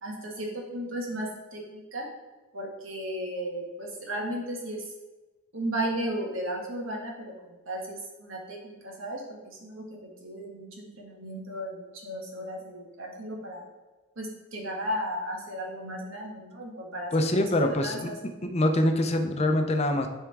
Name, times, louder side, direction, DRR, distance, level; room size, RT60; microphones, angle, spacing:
voice 1, 0.0-2.1 2.5-4.8 5.5-13.7 14.2-17.1 17.6-18.1, right 1 dB, 80° right, -1 dB, 1.5 m, -35 dB
voice 2, 17.1-18.1 18.4-20.1, left 1 dB, 30° left, 5 dB, 0.5 m, -24 dB
10.0 x 3.6 x 3.4 m, 1.2 s
head